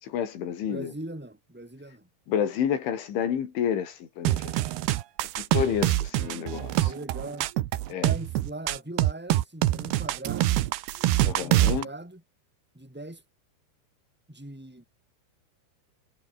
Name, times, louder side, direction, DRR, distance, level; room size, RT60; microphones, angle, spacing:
voice 1, 0.0-0.9 2.3-4.6 5.4-6.9 7.9-8.1 11.2-11.9, left 9 dB, 85° left, 5.7 m, -29 dB
voice 2, 0.7-2.1 6.8-7.5 8.0-10.6 11.3-12.2 12.7-13.2 14.3-14.8, right 1 dB, ahead, 6.5 m, -40 dB
sound 1, 4.3-11.8, right 15 dB, 70° right, 2.9 m, -25 dB
omnidirectional pair, 5.3 m